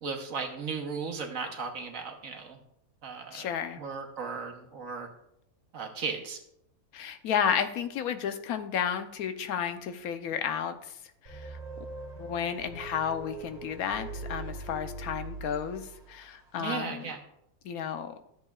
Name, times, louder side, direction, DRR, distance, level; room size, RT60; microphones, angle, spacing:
voice 1, 0.0-2.6 3.0-3.5 3.8-5.1 5.7-6.4 16.6-17.2, right 5 dB, 65° right, 3 dB, 1.5 m, -36 dB
voice 2, 3.3-3.8 6.9-10.9 11.2-11.6 12.2-17.0 17.6-18.1, left 8 dB, 85° left, 9 dB, 1.2 m, -32 dB
sound 1, 11.3-16.3, right 2 dB, 50° right, 1.8 m, -41 dB
13.5 x 7.6 x 2.4 m, 0.78 s
omnidirectional pair, 1.5 m